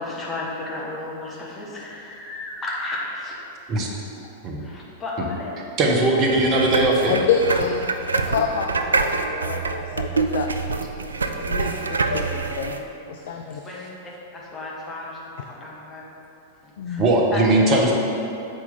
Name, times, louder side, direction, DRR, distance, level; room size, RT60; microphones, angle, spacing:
voice 1, 0.0-3.3 4.6-5.5 6.9-7.6 13.5-13.9 14.3-15.2 15.5-16.0 16.6-17.0 17.3-17.4, left 2 dB, 20° left, -4 dB, 1.2 m, -33 dB
voice 2, 5.8-7.1 17.0-17.9, right 2 dB, 35° right, -1 dB, 1.0 m, -19 dB
sound 1, 6.3-12.8, right 4 dB, 80° right, 0.3 m, -26 dB
voice 3, 7.1-7.9 8.1-10.5 11.4-12.8 13.1-13.6 16.8-17.1, left 6 dB, 60° left, 3 dB, 0.3 m, -27 dB
7.5 x 4.4 x 3.7 m, 2.8 s
figure-of-eight pair, 95°, 0 cm